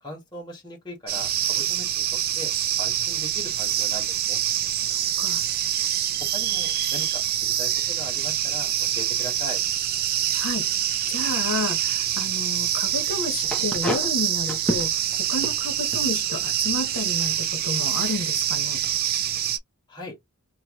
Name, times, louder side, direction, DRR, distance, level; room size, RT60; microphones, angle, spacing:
voice 1, 0.0-4.4 6.3-9.6 19.9-20.2, left 1 dB, 20° left, 1.5 m, -39 dB
sound 1, 1.1-19.6, right 11 dB, 45° right, 0.4 m, -25 dB
voice 2, 4.8-5.4 10.3-10.6 11.1-15.0 15.3-18.8, left 3 dB, 75° left, 0.9 m, -31 dB
sound 2, 13.4-17.3 18.2-18.3 18.6-19.0, equal, 5° left, 0.7 m, -32 dB
2.9 x 2.6 x 2.9 m
head